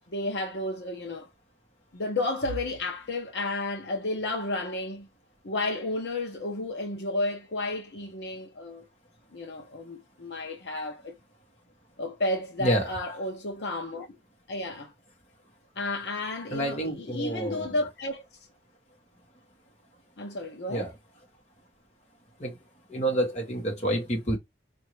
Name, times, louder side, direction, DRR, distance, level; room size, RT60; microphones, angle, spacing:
voice 1, 0.1-1.3 1.9-5.1 5.4-8.8 9.3-11.1 12.0-14.1 14.5-14.9 15.8-18.2 20.2-20.9, left 2 dB, 75° left, 0.9 m, -32 dB
voice 2, 12.6-12.9 16.5-17.7 20.7-20.9 22.4-22.6 22.9-24.4, right 1 dB, 40° left, 1.5 m, -28 dB
4.5 x 2.7 x 3.1 m
head